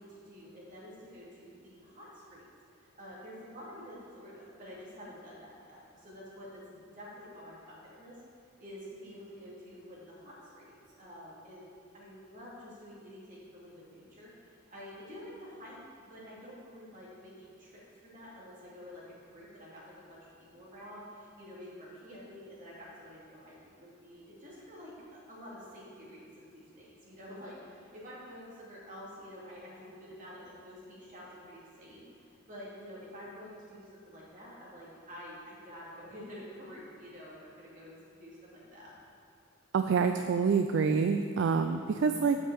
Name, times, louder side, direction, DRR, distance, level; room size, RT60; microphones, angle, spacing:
voice 1, 0.0-2.5 2.7-8.2 8.6-11.6 11.9-15.8 16.1-20.2 20.5-23.7 24.0-38.9, equal, 40° right, -6 dB, 2.4 m, -49 dB
voice 2, 39.7-42.4, right 5 dB, 60° right, 7 dB, 0.3 m, -27 dB
7.9 x 5.5 x 6.8 m, 2.4 s
head